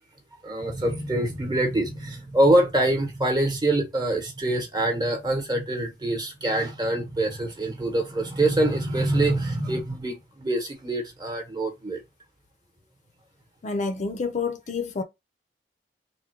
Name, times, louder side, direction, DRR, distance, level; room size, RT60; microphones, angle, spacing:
voice 1, 0.4-12.0, right 1 dB, 25° right, 1.0 m, -25 dB
voice 2, 13.6-15.0, left 4 dB, 40° left, 0.5 m, -28 dB
3.6 x 2.2 x 4.4 m
head